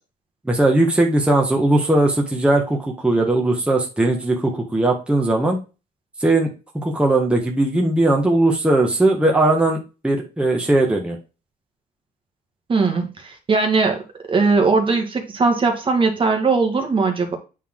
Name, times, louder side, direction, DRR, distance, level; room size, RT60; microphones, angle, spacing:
voice 1, 0.4-5.6 6.2-11.2, right 2 dB, 5° right, 0 dB, 1.6 m, -19 dB
voice 2, 12.7-14.0 14.3-17.4, right 4 dB, 30° right, 3 dB, 1.8 m, -19 dB
8.3 x 4.3 x 3.8 m, 0.30 s
cardioid pair, 110°, 17 cm